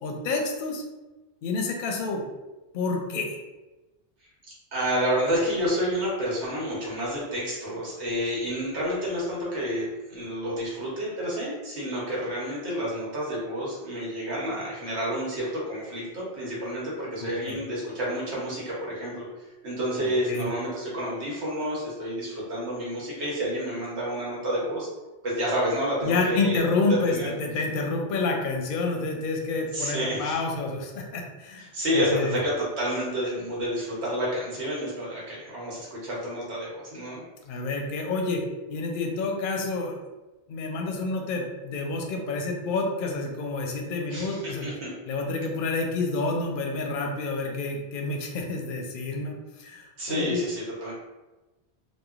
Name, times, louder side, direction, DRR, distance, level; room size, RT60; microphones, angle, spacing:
voice 1, 0.0-0.8 1.4-2.2 2.7-3.4 17.2-17.6 20.0-20.5 26.0-32.4 37.4-38.4 38.7-39.9 40.5-44.7 45.1-50.4, left 3 dB, 60° left, 1 dB, 0.6 m, -29 dB
voice 2, 4.7-19.2 19.6-24.9 25.2-26.6 26.9-27.3 29.7-30.4 31.6-37.2 44.1-44.9 50.0-50.9, equal, 90° right, -5 dB, 1.2 m, -29 dB
3.0 x 2.2 x 2.4 m, 1.1 s
omnidirectional pair, 1.1 m